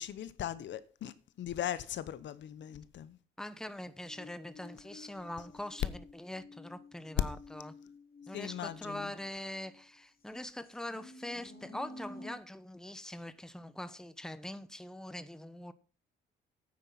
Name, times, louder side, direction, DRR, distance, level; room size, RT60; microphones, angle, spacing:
voice 1, 0.0-3.2 8.3-9.1, left 10 dB, 65° left, 0.9 m, -39 dB
voice 2, 3.4-7.7 8.3-15.7, left 1 dB, 5° left, 1.0 m, -43 dB
sound 1, 4.0-9.8 10.4-12.3, left 2 dB, 45° left, 3.3 m, -52 dB
9.1 x 9.0 x 5.8 m
cardioid pair, 90°, 20 cm